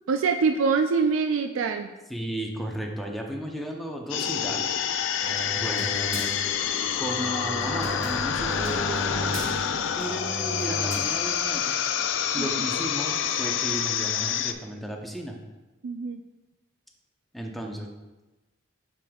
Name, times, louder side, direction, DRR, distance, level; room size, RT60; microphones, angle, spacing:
voice 1, 0.0-1.9 12.4-12.7 15.8-16.2, right 5 dB, 80° right, 6 dB, 0.4 m, -25 dB
voice 2, 2.1-4.7 5.5-6.0 7.0-9.4 10.0-11.7 12.3-15.4 17.3-17.9, right 1 dB, ahead, 1 dB, 0.7 m, -34 dB
sound 1, 4.1-14.5, left 8 dB, 65° left, 0.4 m, -27 dB
sound 2, 5.2-11.0, equal, 20° right, 2.0 m, -34 dB
9.1 x 5.1 x 2.3 m, 1.1 s
head